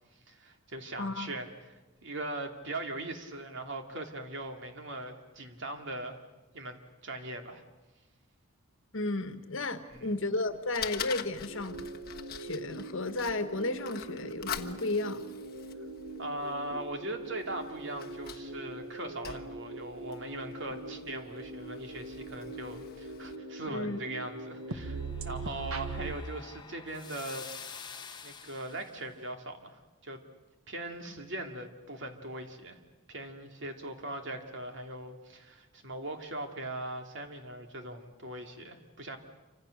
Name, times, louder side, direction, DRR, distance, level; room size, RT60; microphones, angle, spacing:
voice 1, 0.3-6.2 6.5-7.6 9.9-10.2 16.2-27.5 28.2-30.2 30.7-32.8 33.1-39.2, right 2 dB, 60° right, 5 dB, 2.8 m, -40 dB
voice 2, 1.0-1.3 8.9-11.8 12.4-15.2 23.7-24.0, left 2 dB, 60° left, 9 dB, 1.7 m, -33 dB
Fire, 9.9-23.4, left 9 dB, 45° left, 1.3 m, -45 dB
sound 1, 11.5-26.1, right 2 dB, 80° right, 1.6 m, -42 dB
sound 2, 24.4-29.1, left 6 dB, 20° left, 1.3 m, -48 dB
28.0 x 25.5 x 6.7 m, 1.1 s
head